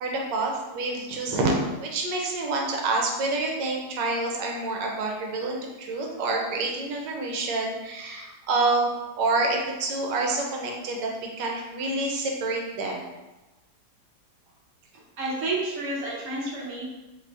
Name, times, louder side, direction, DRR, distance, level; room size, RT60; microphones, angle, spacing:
voice 1, 0.0-1.5 1.8-8.9 9.2-11.1 11.4-13.1, right 3 dB, 80° right, 0 dB, 1.3 m, -27 dB
voice 2, 15.2-16.8, right 2 dB, 55° right, -3 dB, 1.0 m, -30 dB
3.1 x 2.6 x 3.3 m, 1.1 s
omnidirectional pair, 1.9 m